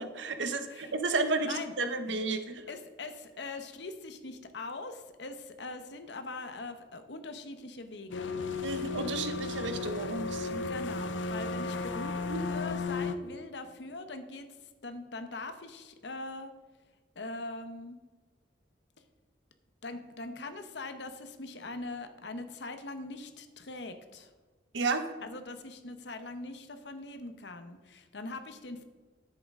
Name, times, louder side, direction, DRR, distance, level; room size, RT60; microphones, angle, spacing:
voice 1, 0.0-2.6 8.6-10.7 12.3-12.4 24.7-25.1, right 3 dB, 80° right, 8 dB, 0.9 m, -32 dB
voice 2, 2.7-8.4 10.7-16.5 17.1-18.0 19.8-24.3 25.2-28.8, left 2 dB, 65° left, 8 dB, 1.0 m, -42 dB
sound 1, 8.1-13.2, left 3 dB, 85° left, 0.7 m, -34 dB
10.5 x 7.8 x 3.7 m, 1.3 s
head